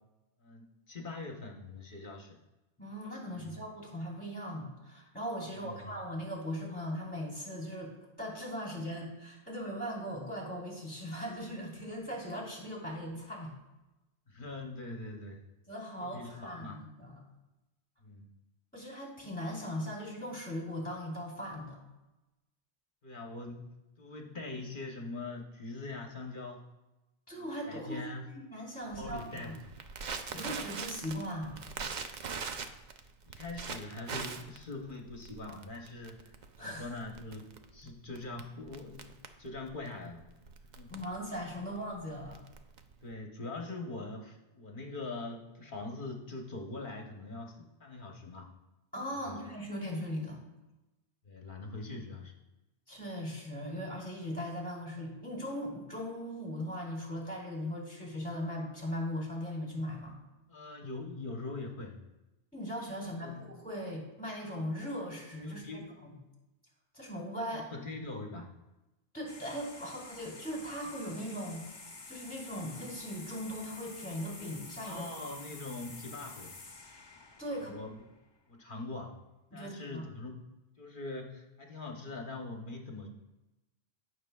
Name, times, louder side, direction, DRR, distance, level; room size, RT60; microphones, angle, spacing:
voice 1, 0.4-2.4 5.4-5.9 14.3-15.4 16.0-16.8 18.0-18.3 23.0-26.6 27.3-28.2 29.0-29.7 30.2-30.4 33.2-39.1 39.4-40.3 40.7-41.0 43.0-48.5 49.1-49.4 51.2-52.3 60.5-62.0 63.1-63.5 65.4-65.9 67.5-68.5 74.8-76.5 77.5-77.9 78.5-79.2 79.5-80.4 80.8-83.1, left 2 dB, 50° left, 2 dB, 1.0 m, -43 dB
voice 2, 2.8-7.9 8.2-13.5 15.7-17.2 18.7-21.8 27.3-28.1 28.3-29.5 30.3-31.6 36.6-36.9 40.9-42.4 48.9-50.4 52.9-60.2 62.5-65.6 66.0-66.1 66.9-67.6 69.1-71.6 72.1-75.0 77.4-77.7 79.5-80.0, equal, 10° left, -3 dB, 2.6 m, -39 dB
Crackle, 28.9-43.1, right 5 dB, 50° right, 0.6 m, -43 dB
sound 1, 69.3-78.4, left 3 dB, 30° left, 0.5 m, -49 dB
14.5 x 6.2 x 2.3 m, 1.0 s
omnidirectional pair, 1.1 m